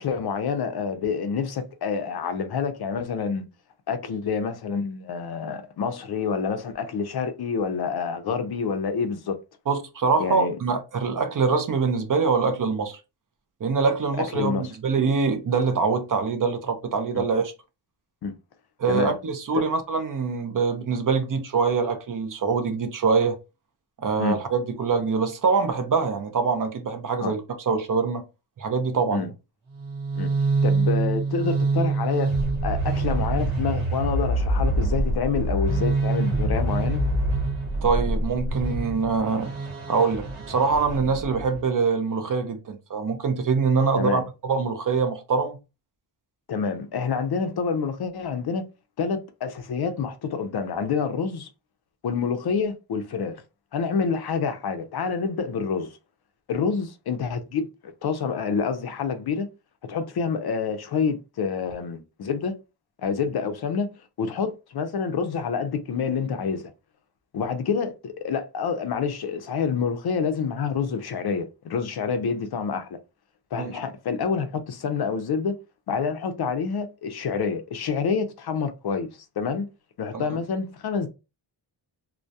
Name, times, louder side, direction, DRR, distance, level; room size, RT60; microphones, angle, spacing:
voice 1, 0.0-3.5 3.9-9.4 10.2-10.6 14.3-14.7 17.1-17.2 18.2-18.3 18.9-19.2 19.5-19.6 24.2-24.4 27.2-27.3 29.1-29.3 30.2-30.3 30.6-32.3 32.6-37.0 44.0-44.2 46.5-48.6 49.0-51.5 52.0-53.4 53.7-56.0 56.5-59.5 59.9-62.6 63.0-63.9 64.2-66.7 67.3-73.0 73.5-75.6 75.9-79.1 79.4-79.7 80.0-81.1, left 5 dB, 55° left, 0.5 m, -27 dB
voice 2, 9.7-13.0 13.6-17.5 18.8-23.4 24.0-28.2 28.6-29.3 37.8-39.5 39.9-45.6 73.6-73.8 80.1-80.3, right 5 dB, 45° right, 0.5 m, -24 dB
sound 1, 29.7-41.6, right 2 dB, 80° right, 0.9 m, -25 dB
2.2 x 2.1 x 2.6 m
cardioid pair, 75°, 48 cm